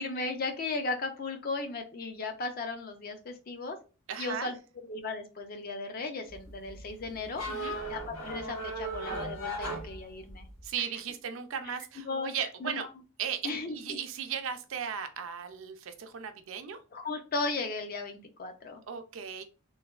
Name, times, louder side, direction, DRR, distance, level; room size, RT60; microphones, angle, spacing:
voice 1, 0.0-3.8 4.2-10.5 10.8-10.9 12.1-12.3 12.6-12.9 13.4-14.0 16.9-18.8, left 3 dB, 45° left, 6 dB, 0.4 m, -36 dB
voice 2, 4.1-4.5 7.4-7.8 10.6-12.9 13.2-16.8 18.9-19.5, right 8 dB, 65° right, 8 dB, 0.4 m, -36 dB
sound 1, 6.3-10.6, right 1 dB, 85° left, 1.3 m, -37 dB
3.2 x 2.2 x 2.3 m, 0.33 s
head